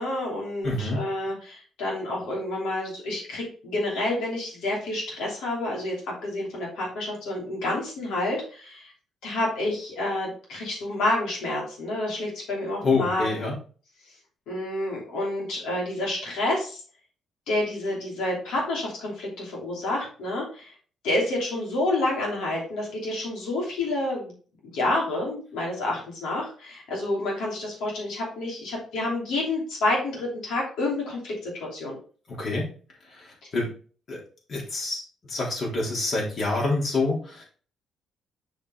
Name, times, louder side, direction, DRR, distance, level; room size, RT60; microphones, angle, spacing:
voice 1, 0.0-8.9 9.2-13.5 14.5-16.8 17.5-20.7 21.0-24.3 24.6-32.0, left 2 dB, 85° left, -2 dB, 3.2 m, -29 dB
voice 2, 0.6-1.0 12.8-13.5 32.4-32.6 33.1-33.7 34.1-34.2 34.5-35.0 35.3-37.4, left 3 dB, 55° left, -3 dB, 3.4 m, -27 dB
6.5 x 5.2 x 3.9 m, 0.41 s
cardioid pair, 90°, 0 cm